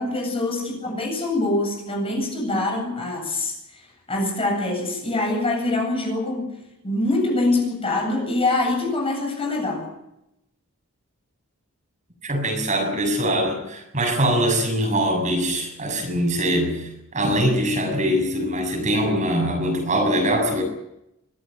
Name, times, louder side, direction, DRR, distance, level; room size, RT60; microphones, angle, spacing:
voice 1, 0.0-9.9, left 2 dB, 25° left, 2 dB, 8.0 m, -24 dB
voice 2, 12.2-20.6, equal, 35° right, 3 dB, 6.9 m, -22 dB
24.5 x 17.0 x 8.9 m, 0.83 s
head